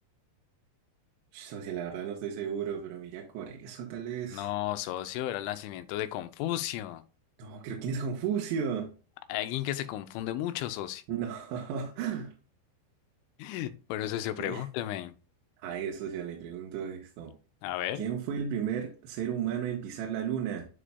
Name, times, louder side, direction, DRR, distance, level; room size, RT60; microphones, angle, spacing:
voice 1, 1.3-4.5 7.4-8.9 11.1-12.3 14.4-14.6 15.6-17.3 18.0-20.7, right 8 dB, 75° right, 0 dB, 3.2 m, -34 dB
voice 2, 4.3-7.0 9.3-11.0 13.4-15.1 17.6-18.0, left 13 dB, 90° left, 11 dB, 3.1 m, -33 dB
11.0 x 5.0 x 2.2 m, 0.34 s
omnidirectional pair, 5.4 m